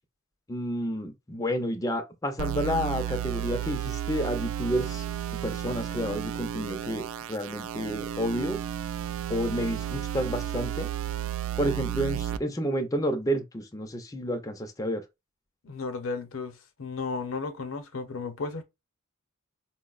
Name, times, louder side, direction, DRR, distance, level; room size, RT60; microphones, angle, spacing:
voice 1, 0.5-5.0 5.4-8.6 9.3-10.9 11.6-15.0, equal, 15° left, 0.4 m, -30 dB
sound 1, 2.4-12.4, right 11 dB, 70° right, 0.3 m, -33 dB
voice 2, 15.6-16.5 16.8-18.6, left 4 dB, 70° left, 0.6 m, -34 dB
4.4 x 2.0 x 2.3 m
head